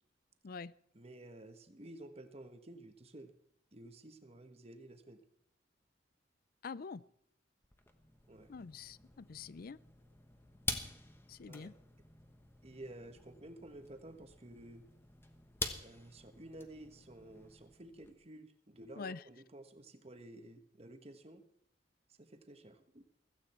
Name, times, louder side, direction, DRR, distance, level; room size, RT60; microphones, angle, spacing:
voice 1, 0.9-3.3 3.7-5.2 8.3-8.5 11.5-11.7 12.6-14.8 15.8-21.4 22.2-23.0, right 1 dB, 35° right, 1.3 m, -52 dB
voice 2, 6.6-7.0 8.5-9.8 11.3-11.7 19.0-19.2, left 5 dB, 50° left, 0.4 m, -45 dB
sound 1, 7.6-18.1, left 2 dB, 15° left, 1.2 m, -47 dB
16.0 x 14.5 x 4.4 m
head